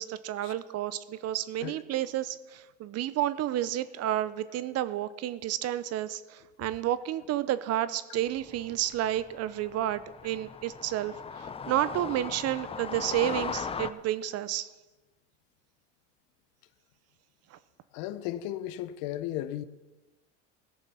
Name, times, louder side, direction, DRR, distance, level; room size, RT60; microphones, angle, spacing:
voice 1, 0.0-14.7 17.5-17.6, right 12 dB, 45° right, 0.7 m, -31 dB
sound 1, 8.4-13.9, left 6 dB, 15° left, 0.6 m, -38 dB
voice 2, 17.9-19.6, left 13 dB, 60° left, 0.8 m, -35 dB
17.0 x 7.0 x 5.7 m
hypercardioid pair, 95°, 37 cm